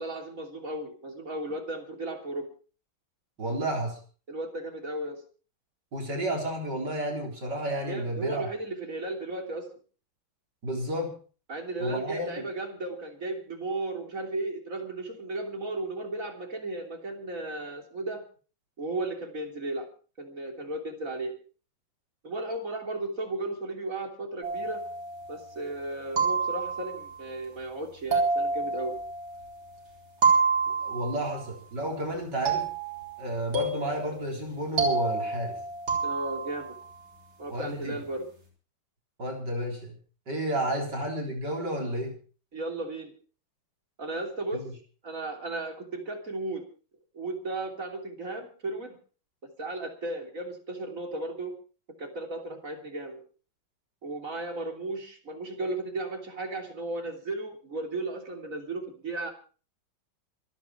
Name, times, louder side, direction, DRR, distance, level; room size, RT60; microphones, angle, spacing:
voice 1, 0.0-2.5 4.3-5.2 7.9-9.7 11.5-18.2 18.8-19.9 20.2-21.3 22.2-24.8 25.3-28.9 36.0-36.7 37.4-38.3 42.5-43.1 44.0-44.6 45.0-46.6 47.1-49.0 49.6-51.6 52.0-53.2 54.0-59.3, right 2 dB, 40° right, 2 dB, 3.5 m, -35 dB
voice 2, 3.4-4.0 5.9-8.5 10.6-11.1 11.8-12.3 30.7-32.7 33.2-35.6 37.5-37.9 39.2-40.0 40.3-42.1 44.5-44.6, right 1 dB, 60° right, 0 dB, 4.4 m, -31 dB
sound 1, 24.4-25.5 26.2-27.1 28.1-29.7 30.2-31.4 32.5-36.7, right 4 dB, 85° right, 5.1 m, -29 dB
26.5 x 9.2 x 4.5 m, 0.38 s
omnidirectional pair, 2.1 m